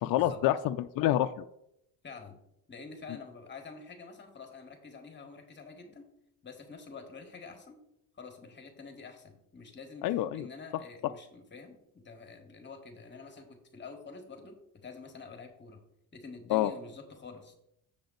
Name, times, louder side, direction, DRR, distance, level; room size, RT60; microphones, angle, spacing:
voice 1, 0.0-1.4 10.0-10.5 16.5-16.7, left 13 dB, 60° left, 8 dB, 0.5 m, -27 dB
voice 2, 2.0-2.4 2.7-6.0 6.4-7.8 8.1-10.0 10.3-15.8 16.1-17.5, left 4 dB, 30° left, 4 dB, 1.5 m, -47 dB
7.2 x 6.8 x 3.9 m, 0.76 s
cardioid pair, 110°, 39 cm